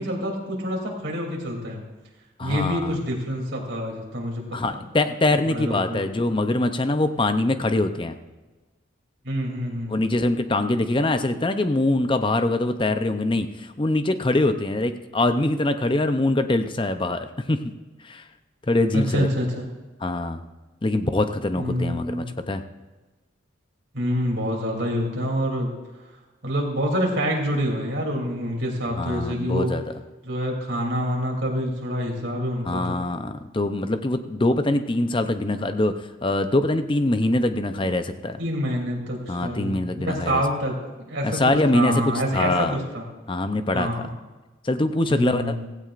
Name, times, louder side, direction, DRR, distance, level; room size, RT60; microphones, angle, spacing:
voice 1, 0.0-1.8 2.4-4.9 5.5-6.0 9.2-10.0 18.9-19.6 21.6-22.3 23.9-25.8 26.4-29.7 30.2-33.0 38.4-40.7 41.1-41.4 41.7-43.0 43.7-44.1 45.1-45.7, equal, 70° right, -1 dB, 3.0 m, -27 dB
voice 2, 2.4-2.9 4.5-8.1 9.9-17.6 18.0-18.2 18.7-19.3 20.0-20.4 20.8-22.6 29.0-29.8 32.7-35.9 36.2-38.4 39.3-40.4 41.2-41.9 42.3-42.7 43.3-44.0 44.6-45.6, left 2 dB, 25° left, 9 dB, 0.6 m, -23 dB
16.0 x 16.0 x 2.5 m, 1.2 s
head